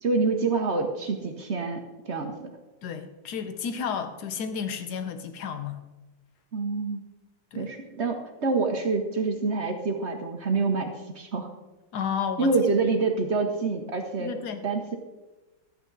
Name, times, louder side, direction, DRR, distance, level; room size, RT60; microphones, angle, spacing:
voice 1, 0.0-2.5 6.5-7.0 7.5-11.5 12.4-14.3 14.6-15.0, right 3 dB, 50° right, 5 dB, 0.8 m, -27 dB
voice 2, 2.8-5.8 7.5-7.7 11.9-12.5 12.8-12.9 14.2-14.6, left 7 dB, 60° left, 8 dB, 1.2 m, -32 dB
13.0 x 8.8 x 3.9 m, 1.1 s
omnidirectional pair, 2.3 m